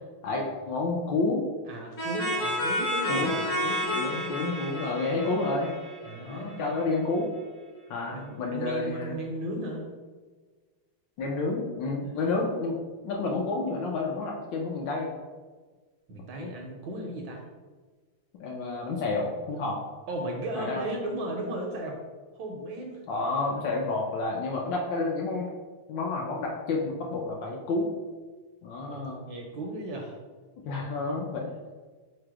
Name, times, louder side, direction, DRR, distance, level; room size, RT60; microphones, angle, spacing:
voice 1, 0.2-1.5 3.1-3.3 3.9-5.7 6.2-7.3 7.9-9.1 11.2-12.7 13.0-15.1 16.4-16.5 18.4-19.8 20.5-20.9 23.1-25.5 25.9-27.9 28.6-29.2 30.6-31.5, left 3 dB, 75° left, -1 dB, 1.1 m, -30 dB
voice 2, 1.7-4.3 6.0-6.8 8.1-9.9 12.0-12.5 16.1-17.4 20.1-22.0 22.3-23.0 28.9-29.0 29.3-30.2, right 1 dB, 75° right, 0 dB, 1.1 m, -36 dB
sound 1, 2.0-6.5, equal, 55° left, 0.9 m, -30 dB
4.6 x 2.0 x 4.6 m, 1.4 s
omnidirectional pair, 2.3 m